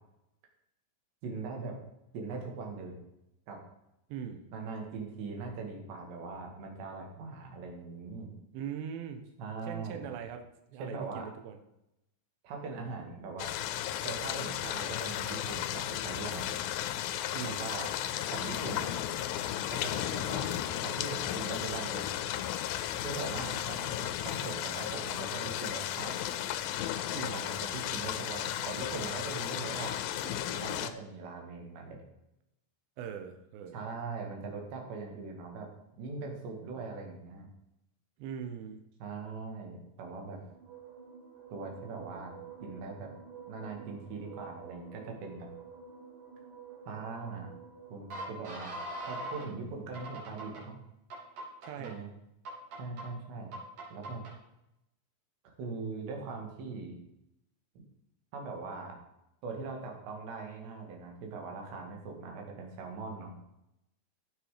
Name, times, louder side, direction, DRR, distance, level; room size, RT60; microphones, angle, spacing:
voice 1, 1.2-1.8 2.1-3.0 3.5-3.6 4.5-8.3 9.4-10.1 10.8-11.3 12.4-13.5 14.0-16.5 17.4-17.9 18.3-18.9 19.7-22.1 23.0-26.2 27.3-29.9 30.2-32.0 33.7-35.7 36.0-37.5 39.0-40.4 41.5-43.1 43.5-45.5 46.9-47.5 47.9-48.8 49.1-50.8 51.8-52.1 52.8-53.5 53.9-54.2 55.4-57.0 58.3-59.0 59.4-63.3, right 4 dB, 90° right, 2 dB, 4.3 m, -41 dB
voice 2, 4.1-4.4 8.5-9.2 9.6-11.6 17.3-17.7 27.1-27.4 33.0-33.8 38.2-38.8 51.6-52.0, right 8 dB, 70° right, 6 dB, 2.6 m, -41 dB
sound 1, 13.4-30.9, left 12 dB, 85° left, 2.2 m, -34 dB
sound 2, 40.5-49.5 49.9-50.6 51.1-51.9 52.5-53.1 53.5-54.3, right 2 dB, 50° right, 4.5 m, -45 dB
15.5 x 6.2 x 5.0 m, 0.85 s
omnidirectional pair, 4.8 m